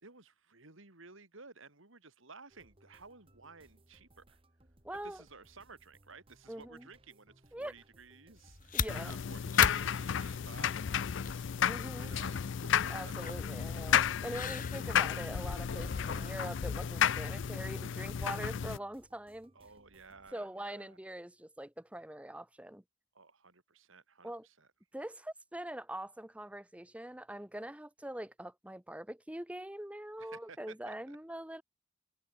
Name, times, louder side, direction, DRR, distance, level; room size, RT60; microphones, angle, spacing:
voice 1, 0.0-4.4 5.0-11.7 12.0-12.5 12.8-13.4 19.5-21.0 23.1-24.7 30.2-31.2, right 4 dB, 70° right, 2.9 m, -55 dB
sound 1, 2.5-20.3, right 1 dB, 25° right, 2.1 m, -65 dB
voice 2, 4.8-5.2 6.5-6.9 7.5-7.7 8.7-9.2 11.6-12.2 12.9-19.5 20.3-22.8 24.2-24.5 24.9-31.6, right 1 dB, 5° right, 0.8 m, -43 dB
sound 2, 8.4-17.5, left 6 dB, 40° left, 1.3 m, -42 dB
sound 3, 8.9-18.8, left 8 dB, 60° left, 0.4 m, -32 dB
head